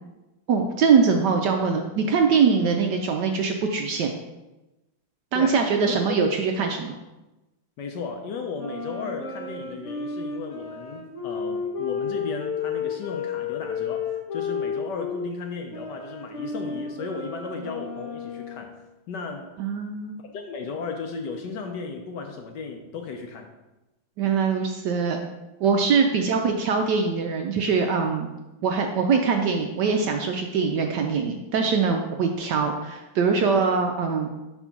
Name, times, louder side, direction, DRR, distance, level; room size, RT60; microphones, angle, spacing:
voice 1, 0.5-4.1 5.3-7.0 19.6-20.1 24.2-25.2 25.6-28.3 28.6-34.3, right 5 dB, 75° right, 3 dB, 1.0 m, -22 dB
voice 2, 5.3-6.2 7.8-18.8 19.1-19.6 20.2-23.5 26.2-26.3, left 4 dB, 70° left, 3 dB, 1.1 m, -35 dB
sound 1, 8.6-15.3 15.7-18.7, left 5 dB, 45° left, 1.2 m, -32 dB
4.5 x 4.4 x 5.7 m, 1.0 s
omnidirectional pair, 2.2 m